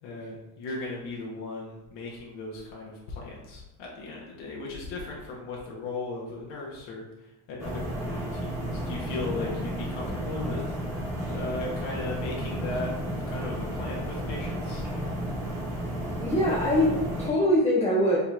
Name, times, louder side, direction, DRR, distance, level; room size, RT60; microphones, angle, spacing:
voice 1, 0.0-11.0 11.3-12.9 13.3-14.9, left 2 dB, 65° left, -3 dB, 1.2 m, -37 dB
sound 1, 7.6-17.3, equal, 5° right, 1.3 m, -32 dB
voice 2, 16.2-18.2, equal, 15° left, -4 dB, 0.6 m, -23 dB
5.3 x 3.0 x 2.5 m, 1.0 s
supercardioid pair, 115°, 46 cm